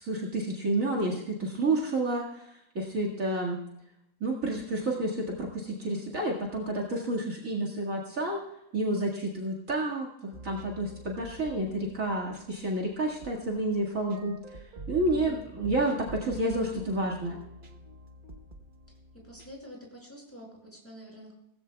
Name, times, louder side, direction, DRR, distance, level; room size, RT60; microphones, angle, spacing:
voice 1, 0.0-2.5 2.7-3.6 4.2-8.4 8.7-14.4 14.9-17.4, right 2 dB, 55° right, 0 dB, 2.4 m, -30 dB
sound 1, 10.3-19.6, right 2 dB, 35° right, 1.2 m, -47 dB
voice 2, 15.1-15.4 19.1-21.3, equal, 10° left, -2 dB, 5.8 m, -47 dB
19.5 x 15.0 x 2.3 m, 0.80 s
omnidirectional pair, 1.7 m